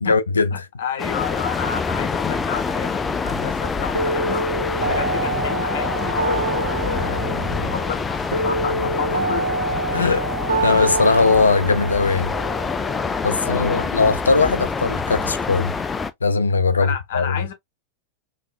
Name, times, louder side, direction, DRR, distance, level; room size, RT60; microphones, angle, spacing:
voice 1, 0.0-0.6 9.9-10.2 10.6-12.3 13.2-15.7 16.2-17.2, left 4 dB, 75° left, 0.4 m, -19 dB
voice 2, 0.5-9.8 10.6-10.8 13.0-13.9 16.8-17.5, left 7 dB, 55° left, 1.0 m, -30 dB
sound 1, 1.0-16.1, left 4 dB, 15° left, 0.4 m, -26 dB
sound 2, 3.9-13.9, right 3 dB, 80° right, 0.7 m, -26 dB
3.6 x 2.9 x 2.2 m
figure-of-eight pair, 90°, 0 cm